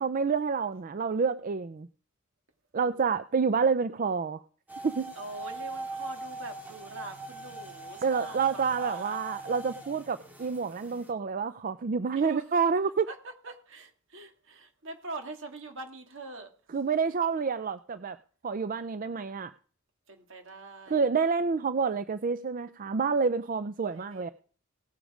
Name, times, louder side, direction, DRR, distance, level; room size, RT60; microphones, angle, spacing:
voice 1, 0.0-1.9 2.7-4.4 4.8-5.1 8.0-13.1 16.7-18.2 18.4-19.5 20.9-24.3, right 5 dB, 40° right, 0.4 m, -28 dB
sound 1, 4.7-11.1, right 2 dB, 10° right, 2.4 m, -41 dB
voice 2, 5.1-9.2 12.1-12.4 13.1-16.5 20.1-21.0 23.9-24.3, right 2 dB, 65° right, 2.3 m, -43 dB
17.5 x 7.2 x 5.0 m
head